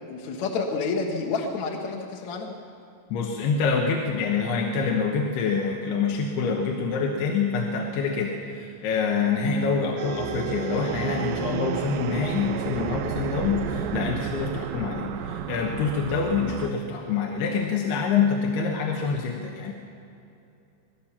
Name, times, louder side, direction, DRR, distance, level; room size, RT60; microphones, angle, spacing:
voice 1, 0.1-2.5, left 4 dB, 60° left, 0 dB, 2.1 m, -29 dB
voice 2, 3.1-19.7, left 5 dB, 75° left, 1 dB, 3.2 m, -26 dB
sound 1, 9.2-16.7, right 9 dB, 80° right, 2.1 m, -32 dB
sound 2, 9.8-14.4, right 1 dB, 45° left, 1.8 m, -43 dB
20.0 x 17.5 x 7.3 m, 2.7 s
omnidirectional pair, 4.8 m